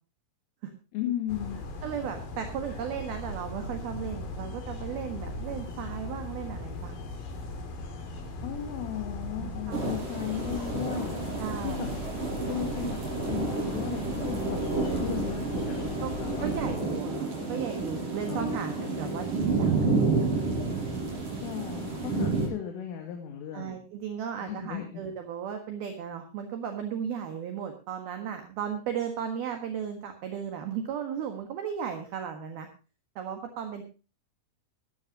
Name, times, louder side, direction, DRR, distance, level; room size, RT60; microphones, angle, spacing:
voice 1, 0.9-1.6 8.4-11.2 11.6-11.9 12.5-13.0 13.3-16.5 18.3-19.0 21.4-23.8 24.4-25.0, left 11 dB, 75° left, 3 dB, 4.5 m, -36 dB
sound 1, 1.3-16.7, left 2 dB, 45° left, 3.9 m, -38 dB
voice 2, 1.8-7.0 9.4-9.8 11.4-11.8 16.0-16.1 16.4-19.9 20.2-20.3 23.5-32.7 33.2-33.8, right 8 dB, 60° right, 5 dB, 2.9 m, -35 dB
sound 2, 9.7-22.5, right 3 dB, 40° right, 7.4 m, -30 dB
18.0 x 13.5 x 2.9 m, 0.33 s
omnidirectional pair, 5.9 m